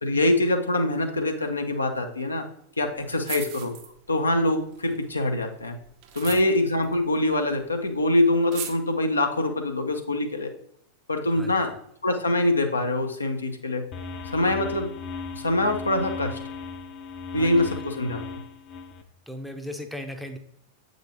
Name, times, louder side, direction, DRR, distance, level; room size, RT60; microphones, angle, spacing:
voice 1, 0.0-2.5 2.8-3.7 4.1-5.7 6.1-10.5 11.1-11.7 12.0-13.8 14.2-15.0 15.3-16.4 17.3-18.2, left 1 dB, 80° left, 4 dB, 0.8 m, -24 dB
sound 1, 2.9-3.0 3.2-4.3 4.6-7.7 8.0-8.1 8.3-8.7, right 9 dB, 45° right, 0.9 m, -39 dB
voice 2, 11.3-11.7 17.4-17.9 19.3-20.4, equal, ahead, 5 dB, 0.8 m, -38 dB
sound 2, 13.9-19.0, left 4 dB, 35° left, 0.7 m, -37 dB
7.7 x 5.3 x 2.9 m, 0.71 s
figure-of-eight pair, 90°, 0 cm